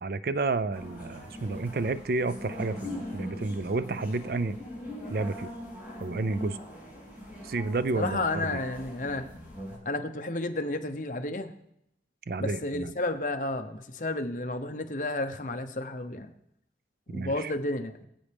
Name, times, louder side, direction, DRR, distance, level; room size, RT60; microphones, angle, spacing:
voice 1, 0.0-4.6 5.1-5.5 6.0-6.6 7.4-8.6 12.3-12.9 17.1-17.5, right 3 dB, 55° right, 14 dB, 0.4 m, -31 dB
sound 1, 0.7-9.8, left 1 dB, 10° right, 3.7 m, -41 dB
voice 2, 7.9-9.2 9.8-11.5 12.4-16.3 17.1-18.0, left 2 dB, 45° left, 6 dB, 0.9 m, -32 dB
23.0 x 8.5 x 3.5 m, 0.79 s
head